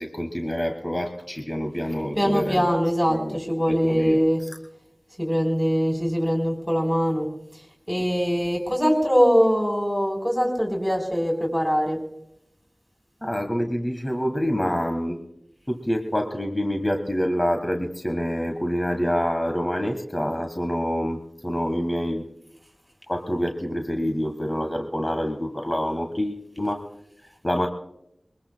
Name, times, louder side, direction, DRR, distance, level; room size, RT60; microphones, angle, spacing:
voice 1, 0.0-2.7 3.1-3.4 3.7-4.2 13.2-15.2 15.7-22.3 23.1-26.8 27.4-27.7, equal, 25° left, 4 dB, 1.5 m, -26 dB
voice 2, 2.2-4.4 5.2-7.3 7.5-7.6 7.9-12.0, equal, 5° left, 0 dB, 4.0 m, -22 dB
22.0 x 21.0 x 2.3 m, 0.79 s
wide cardioid pair, 45°, 0 cm